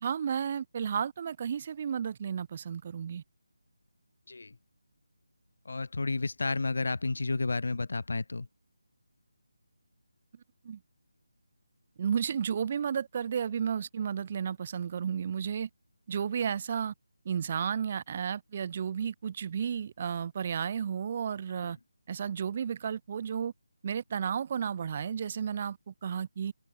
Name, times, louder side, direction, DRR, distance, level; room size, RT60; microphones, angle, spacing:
voice 1, 0.0-3.2 10.6-10.8 12.0-15.7 16.1-16.9 17.2-21.8 22.1-23.5 23.8-26.5, right 7 dB, 30° right, 0.5 m, -32 dB
voice 2, 5.7-8.5, left 3 dB, 65° left, 0.6 m, -31 dB
open air
figure-of-eight pair, 170°, 0 cm